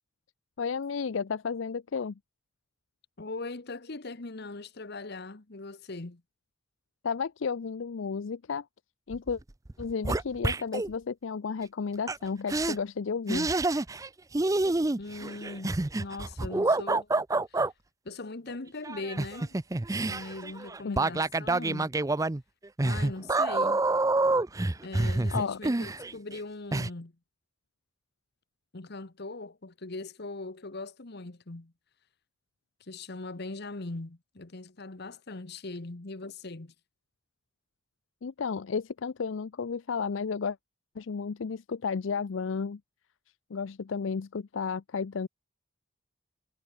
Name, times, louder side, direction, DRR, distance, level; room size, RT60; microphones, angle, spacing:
voice 1, 0.6-2.1 7.0-8.7 9.1-9.4 9.8-13.5 20.8-21.0 25.3-25.6 38.2-40.6 41.0-42.8 43.5-45.3, left 5 dB, 70° left, 0.5 m, -32 dB
voice 2, 3.2-6.2 15.0-17.1 17.5-17.6 18.0-19.6 20.0-21.9 22.8-23.8 24.8-27.1 28.7-31.7 32.8-36.7, left 2 dB, 55° left, 1.2 m, -40 dB
sound 1, 9.1-9.4 9.7-10.9 12.1-12.2 12.5-12.8 13.3-14.1 14.3-17.7 18.8-26.4 26.7-26.9, right 2 dB, 15° right, 0.5 m, -27 dB
head